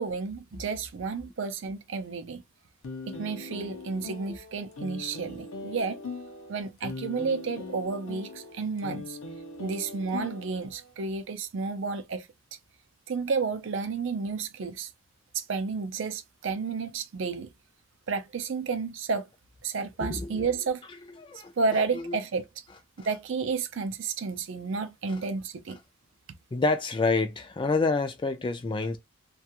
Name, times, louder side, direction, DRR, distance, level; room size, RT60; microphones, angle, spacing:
voice 1, 0.0-2.4 3.1-6.0 6.5-9.2 9.6-12.3 13.1-14.9 15.3-17.5 18.1-19.2 19.6-20.8 21.6-22.4 23.0-25.8, right 4 dB, 60° right, 0.4 m, -31 dB
sound 1, 2.8-10.9, left 3 dB, 70° left, 0.6 m, -40 dB
voice 2, 20.0-20.4 21.0-22.2 23.0-23.1 25.1-25.2 26.5-29.0, left 3 dB, 20° left, 0.3 m, -29 dB
2.3 x 2.3 x 2.8 m
head